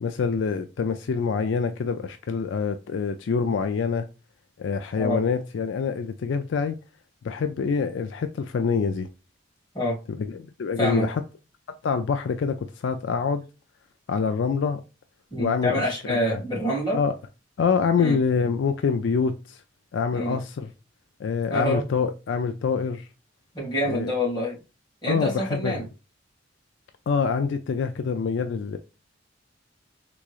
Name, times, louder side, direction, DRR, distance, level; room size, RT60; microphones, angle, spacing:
voice 1, 0.0-4.1 4.6-6.8 7.2-9.1 10.2-11.2 11.8-13.4 14.1-14.8 15.4-15.8 16.1-16.4 16.9-17.1 17.6-19.6 19.9-20.7 21.2-23.1 23.9-24.1 25.1-25.7 27.1-28.8, left 5 dB, 70° left, 0.4 m, -25 dB
voice 2, 15.3-17.0 18.0-18.2 20.1-20.4 21.5-21.8 23.5-24.6 25.0-25.8, equal, 20° left, 1.8 m, -26 dB
3.6 x 3.0 x 2.4 m
head